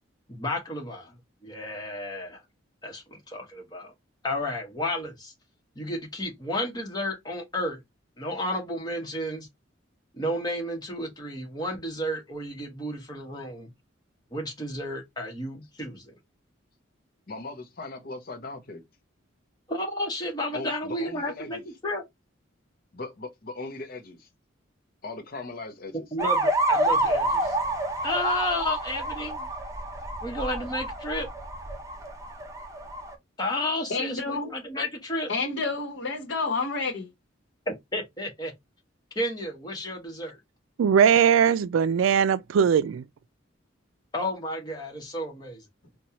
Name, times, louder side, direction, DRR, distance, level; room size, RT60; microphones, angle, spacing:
voice 1, 0.3-1.1 1.4-2.4 2.8-3.9 4.2-5.3 5.7-7.8 8.2-9.5 10.1-13.7 14.3-16.1 19.7-22.0 25.9-27.6 28.0-29.5 30.2-31.3 33.4-35.3 37.7-38.5 39.1-40.4 44.1-45.6, left 1 dB, 20° left, 1.1 m, -32 dB
voice 2, 17.3-18.8 20.5-21.6 22.9-24.3 25.0-26.1, left 3 dB, 50° left, 0.7 m, -39 dB
sound 1, 26.2-33.1, right 1 dB, 15° right, 0.6 m, -28 dB
voice 3, 33.9-34.5 35.3-37.1, left 3 dB, 65° left, 1.0 m, -29 dB
voice 4, 40.8-43.0, right 7 dB, 90° right, 0.3 m, -20 dB
4.1 x 2.3 x 2.9 m
head